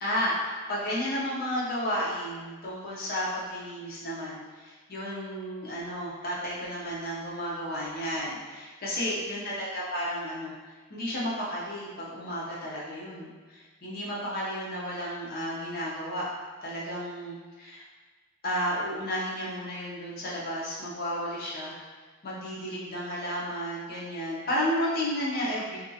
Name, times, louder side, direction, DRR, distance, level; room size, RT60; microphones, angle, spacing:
voice 1, 0.0-10.5 10.9-16.3 16.6-17.8 18.4-21.8 22.2-25.8, equal, 45° left, -6 dB, 0.7 m, -32 dB
2.7 x 2.3 x 2.6 m, 1.4 s
head